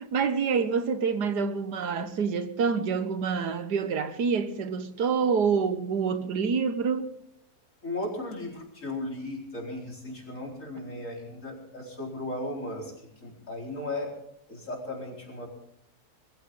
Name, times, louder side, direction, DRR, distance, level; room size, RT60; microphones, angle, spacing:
voice 1, 0.0-7.1, right 5 dB, 85° right, 1.8 m, -27 dB
voice 2, 7.8-14.1 14.5-15.5, left 1 dB, 50° left, 4.8 m, -36 dB
21.5 x 15.5 x 3.8 m
omnidirectional pair, 1.7 m